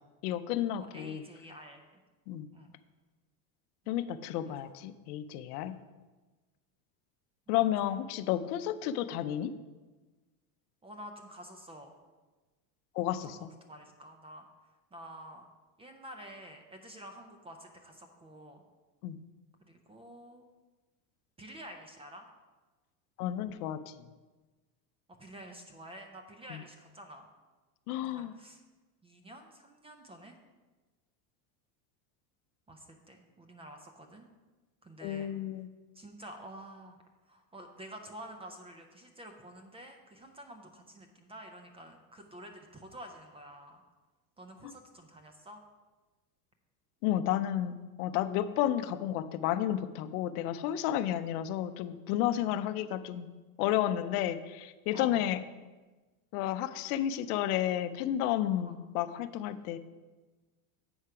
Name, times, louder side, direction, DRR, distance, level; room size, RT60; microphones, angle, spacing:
voice 1, 0.2-1.2 2.3-2.5 3.9-5.8 7.5-9.5 13.0-13.5 19.0-19.2 23.2-23.8 26.5-26.6 27.9-28.3 35.0-35.7 47.0-53.3 53.6-55.4 56.3-59.8, left 12 dB, 70° left, 12 dB, 0.6 m, -31 dB
voice 2, 0.7-2.0 2.5-2.7 3.8-4.0 4.4-4.7 5.7-5.9 10.8-11.9 13.2-14.5 14.9-15.4 15.8-18.6 19.6-20.5 21.4-22.3 25.2-27.3 28.0-28.6 29.0-30.3 32.7-34.3 34.8-35.3 35.9-37.0 37.3-43.8 44.4-45.6 51.0-51.2 52.3-52.6 54.9-55.3 58.6-58.8, right 1 dB, 15° right, 5 dB, 0.4 m, -49 dB
8.0 x 5.6 x 4.8 m, 1.2 s
supercardioid pair, 130°, 47 cm